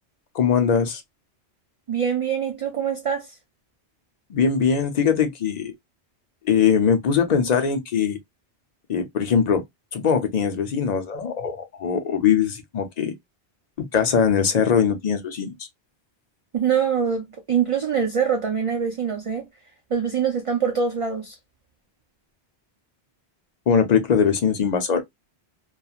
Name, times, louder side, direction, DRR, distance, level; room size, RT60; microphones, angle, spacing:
voice 1, 0.3-1.0 4.3-5.7 6.4-8.2 8.9-9.6 9.9-13.1 13.9-15.5 23.7-25.0, left 7 dB, 55° left, 0.5 m, -21 dB
voice 2, 1.9-3.3 16.5-19.5 19.9-21.3, right 7 dB, 45° right, 0.4 m, -24 dB
2.8 x 2.3 x 2.3 m
omnidirectional pair, 1.1 m